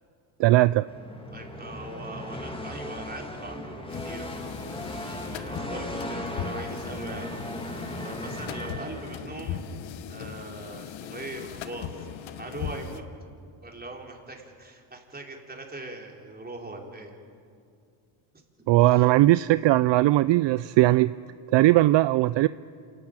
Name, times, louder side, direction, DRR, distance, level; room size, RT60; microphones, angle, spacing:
voice 1, 0.4-0.9 18.7-21.1 21.5-22.5, right 17 dB, 60° right, 16 dB, 0.5 m, -19 dB
sound 1, 0.8-9.5, left 1 dB, 10° left, 2.2 m, -37 dB
voice 2, 1.3-4.5 5.0-7.7 8.0-9.6 10.1-13.0 13.6-17.1 18.8-19.0, right 2 dB, 20° right, 1 dB, 4.0 m, -41 dB
sound 2, 3.9-13.0, left 9 dB, 70° left, 1.3 m, -39 dB
27.5 x 13.5 x 9.0 m, 2.4 s
cardioid pair, 85°, 49 cm